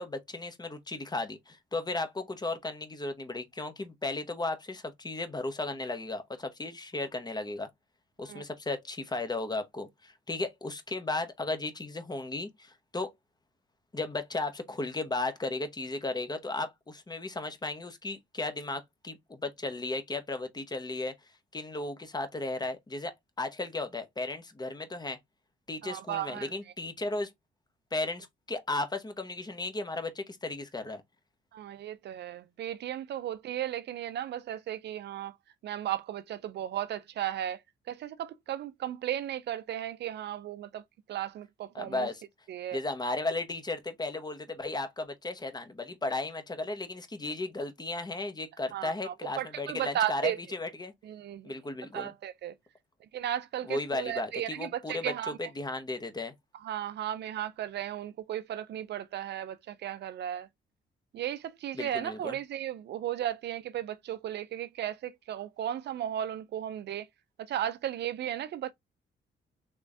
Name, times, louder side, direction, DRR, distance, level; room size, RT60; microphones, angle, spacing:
voice 1, 0.0-7.7 8.2-13.1 13.9-21.1 21.5-23.1 23.4-25.2 25.7-27.3 27.9-31.0 41.7-42.2 42.7-50.9 51.4-52.1 53.7-55.1 55.6-56.3 61.7-62.3, left 2 dB, 20° left, 1.0 m, -35 dB
voice 2, 25.8-26.6 31.5-35.4 35.6-37.6 37.9-40.8 41.1-42.1 42.5-42.8 48.7-50.4 51.0-51.6 51.9-52.5 53.1-55.5 56.6-60.5 61.1-67.1 67.4-68.7, right 11 dB, 60° right, 0.4 m, -35 dB
3.5 x 3.1 x 2.6 m
cardioid pair, 90°, 20 cm